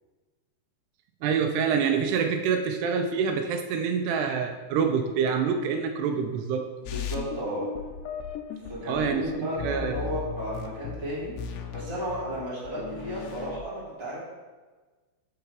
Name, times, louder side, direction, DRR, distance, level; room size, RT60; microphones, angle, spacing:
voice 1, 1.2-6.7 8.9-10.0, right 6 dB, 80° right, 5 dB, 2.7 m, -26 dB
voice 2, 6.8-7.7 8.6-11.3 11.7-14.2, equal, 10° right, -8 dB, 1.7 m, -33 dB
sound 1, 6.9-13.6, left 6 dB, 85° left, 2.9 m, -37 dB
12.5 x 5.3 x 3.4 m, 1.3 s
omnidirectional pair, 4.8 m